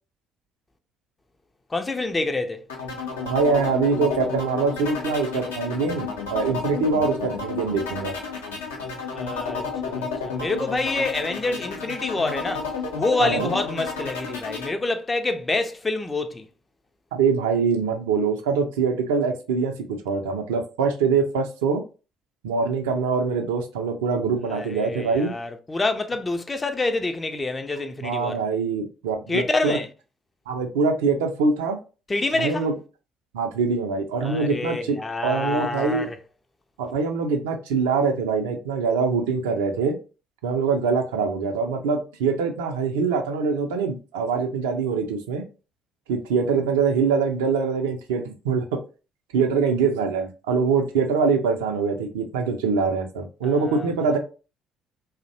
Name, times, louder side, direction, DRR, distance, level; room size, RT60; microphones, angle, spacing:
voice 1, 1.7-2.6 9.1-12.7 13.0-16.5 24.5-28.4 29.3-29.9 32.1-32.7 34.2-36.2 53.4-54.2, left 2 dB, 20° left, 0.4 m, -27 dB
sound 1, 2.7-14.7, left 5 dB, 75° left, 0.5 m, -31 dB
voice 2, 3.2-8.1 13.2-13.5 17.1-21.8 22.4-25.3 28.0-29.8 30.5-31.8 32.4-32.7 33.3-35.0 35.2-36.1 36.8-40.0 40.4-45.4 46.1-48.6 49.3-54.2, right 5 dB, 70° right, 0.3 m, -24 dB
2.5 x 2.0 x 2.6 m
figure-of-eight pair, 50°, 0 cm